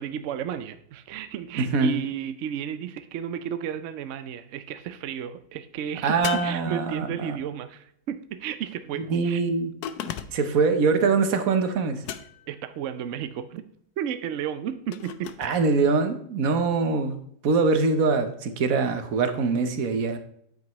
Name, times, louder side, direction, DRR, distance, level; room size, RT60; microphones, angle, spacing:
voice 1, 0.0-9.4 12.5-13.6 14.0-15.3, right 9 dB, 75° right, 11 dB, 0.6 m, -33 dB
voice 2, 1.6-1.9 6.0-7.4 9.1-9.7 10.3-12.0 15.4-17.2 17.4-20.2, right 4 dB, 55° right, 8 dB, 1.2 m, -23 dB
sound 1, 6.2-7.3 9.8-10.6 12.0-12.6 14.9-15.6, left 10 dB, 70° left, 1.1 m, -36 dB
9.4 x 7.7 x 3.1 m, 0.68 s
omnidirectional pair, 1.9 m